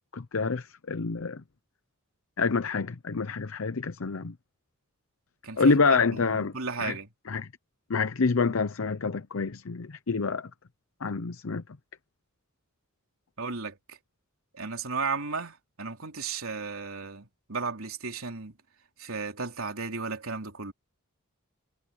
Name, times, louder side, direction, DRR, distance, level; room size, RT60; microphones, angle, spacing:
voice 1, 0.1-1.4 2.4-4.3 5.6-6.5 6.8-6.9 7.3-7.5 7.9-10.5 11.0-11.6, left 4 dB, 65° left, 0.7 m, -27 dB
voice 2, 5.4-7.1 13.4-14.0 14.5-18.5 19.0-20.7, right 4 dB, 75° right, 3.4 m, -35 dB
head